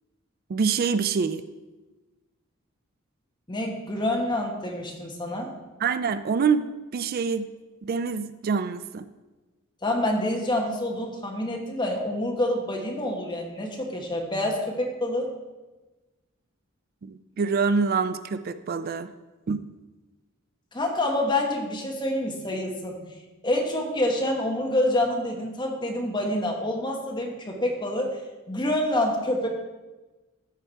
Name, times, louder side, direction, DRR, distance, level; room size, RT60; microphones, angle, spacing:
voice 1, 0.5-1.4 5.8-7.5 7.8-9.1 17.0-19.1 19.5-19.6, right 5 dB, 45° right, 13 dB, 0.3 m, -26 dB
voice 2, 3.5-5.5 9.8-15.3 20.7-23.0 23.4-28.2 28.5-29.5, left 1 dB, 20° left, 0 dB, 1.3 m, -27 dB
13.0 x 4.6 x 4.5 m, 1.2 s
head